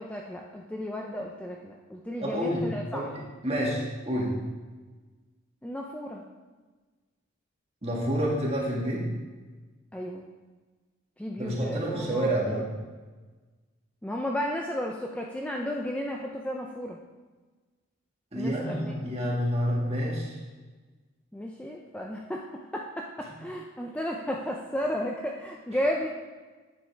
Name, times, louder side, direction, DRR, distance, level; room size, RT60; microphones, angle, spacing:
voice 1, 0.0-3.0 5.6-6.2 9.9-10.3 11.2-12.6 14.0-17.0 18.4-18.9 21.3-22.4 22.7-26.1, equal, 5° left, 0 dB, 0.4 m, -33 dB
voice 2, 2.2-2.7 2.9-3.1 3.4-4.3 7.8-9.0 11.4-12.7 18.3-20.4, equal, 30° right, -4 dB, 1.8 m, -28 dB
9.4 x 7.0 x 3.3 m, 1.3 s
head